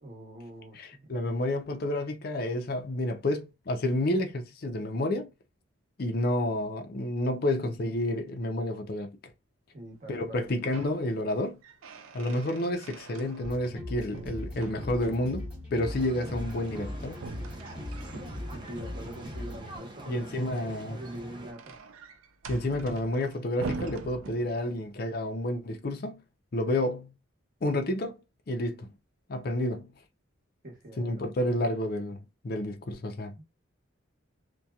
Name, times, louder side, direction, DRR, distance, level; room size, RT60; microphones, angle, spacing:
voice 1, 0.0-1.1 9.7-10.5 18.5-20.3 20.6-21.8 30.6-31.1 33.4-33.5, right 1 dB, 40° right, 1.1 m, -44 dB
voice 2, 0.7-5.3 6.0-9.1 10.1-11.6 12.1-17.2 20.1-21.0 22.5-26.2 26.5-27.1 27.6-28.1 28.5-28.9 29.3-29.9 31.0-33.3, left 1 dB, 50° left, 0.4 m, -30 dB
sound 1, 10.3-11.0 11.4-13.8 14.1-15.3 17.1-18.8 20.8-24.9, right 4 dB, 90° right, 0.4 m, -43 dB
sound 2, 13.4-19.8, left 1 dB, 5° right, 0.8 m, -39 dB
sound 3, 15.8-21.5, right 1 dB, 25° right, 0.4 m, -45 dB
2.7 x 2.2 x 2.3 m
head